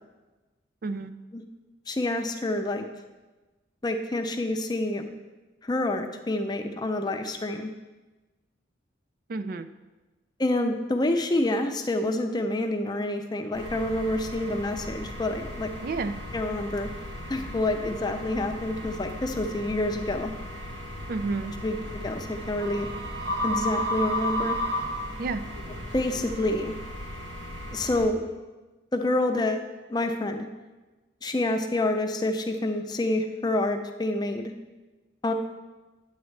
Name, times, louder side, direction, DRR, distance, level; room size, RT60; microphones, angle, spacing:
voice 1, 0.8-1.1 9.3-9.7 15.8-16.1 21.1-21.5 25.2-25.4, right 3 dB, 50° right, 11 dB, 0.4 m, -30 dB
voice 2, 1.9-2.8 3.8-5.1 5.6-7.7 10.4-15.7 16.3-16.9 17.3-20.3 21.6-21.8 22.0-22.9 23.4-24.6 25.7-26.7 27.7-28.2 28.9-29.6 29.9-30.4 31.2-34.5 35.2-35.3, left 1 dB, 20° left, 5 dB, 0.5 m, -27 dB
sound 1, 13.5-28.1, equal, 70° right, 1.2 m, -34 dB
8.9 x 8.2 x 3.3 m, 1.2 s
head